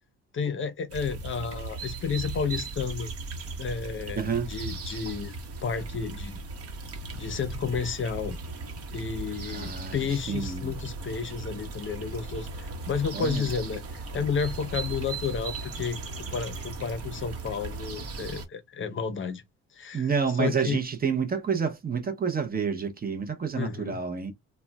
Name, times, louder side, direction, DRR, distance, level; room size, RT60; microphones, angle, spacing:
voice 1, 0.3-3.1 3.6-5.3 5.6-6.3 7.1-8.4 8.9-16.0 16.3-19.4 19.7-20.1 20.4-20.8 23.6-24.0, left 6 dB, 40° left, 0.7 m, -31 dB
sound 1, 0.9-18.5, right 3 dB, 50° right, 0.9 m, -37 dB
voice 2, 4.1-4.5 9.5-10.7 13.1-13.4 19.9-24.3, right 6 dB, 30° right, 0.6 m, -29 dB
3.6 x 2.2 x 2.2 m
cardioid pair, 90°, 30 cm